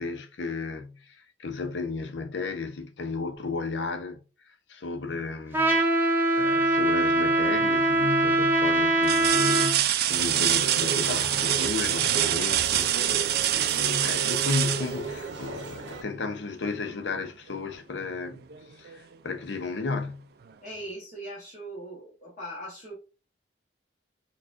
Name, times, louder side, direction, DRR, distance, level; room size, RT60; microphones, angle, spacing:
voice 1, 0.0-5.8 6.4-18.4 18.7-20.3, left 4 dB, 80° left, 0.6 m, -34 dB
Trumpet, 5.5-9.7, right 2 dB, 10° right, 0.6 m, -23 dB
sound 1, 7.3-7.8 8.3-8.4 9.0-15.7 17.5-17.6 18.1-19.1 20.4-20.5, right 11 dB, 55° right, 0.3 m, -26 dB
sound 2, 10.1-16.0, right 4 dB, 85° right, 0.7 m, -35 dB
voice 2, 20.6-22.9, right 1 dB, 45° left, 1.1 m, -40 dB
4.7 x 2.3 x 2.5 m
head